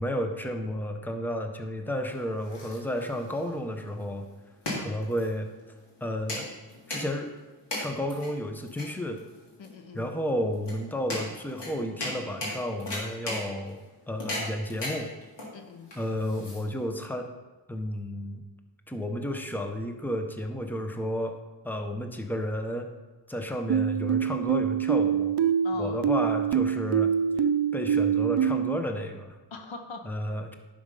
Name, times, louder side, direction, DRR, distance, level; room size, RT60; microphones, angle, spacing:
voice 1, 0.0-4.3 4.8-5.5 6.0-6.5 6.9-7.3 7.8-9.2 9.9-13.8 14.1-15.1 16.0-17.3 17.7-18.4 18.9-21.3 21.6-22.9 23.3-25.4 25.8-27.1 27.7-29.4 30.0-30.5, equal, 5° left, 5 dB, 0.9 m, -32 dB
sound 1, 2.1-17.0, left 1 dB, 70° left, 3.2 m, -38 dB
voice 2, 9.6-10.1 15.5-15.9 25.6-26.0 29.5-30.1, left 4 dB, 85° left, 6 dB, 1.1 m, -41 dB
sound 2, 23.7-28.8, right 8 dB, 65° right, 0.6 m, -25 dB
11.0 x 5.2 x 5.5 m, 1.2 s
wide cardioid pair, 95°, 44 cm